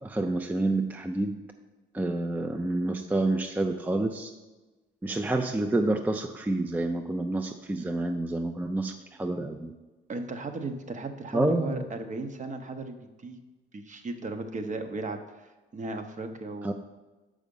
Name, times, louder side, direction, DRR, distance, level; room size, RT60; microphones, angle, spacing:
voice 1, 0.0-1.4 1.9-4.3 5.0-9.7 11.3-11.9 16.6-16.7, right 2 dB, 10° right, 6 dB, 0.4 m, -28 dB
voice 2, 10.1-13.4 13.7-16.7, right 3 dB, 40° right, 7 dB, 0.8 m, -36 dB
6.4 x 5.0 x 5.3 m, 1.2 s
cardioid pair, 90°, 20 cm